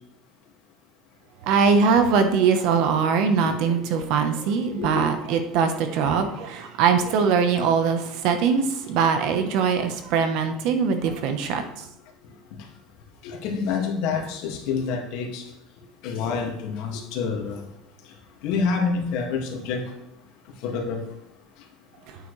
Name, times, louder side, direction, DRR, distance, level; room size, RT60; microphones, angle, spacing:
voice 1, 1.4-11.8, right 6 dB, 60° right, 7 dB, 1.1 m, -22 dB
voice 2, 3.4-3.9 4.8-5.0 12.2-12.3 13.2-15.4 16.0-17.6 18.4-19.8 20.6-21.0, left 5 dB, 65° left, 1 dB, 2.1 m, -27 dB
9.2 x 9.1 x 3.3 m, 0.84 s
cardioid pair, 155°, 0 cm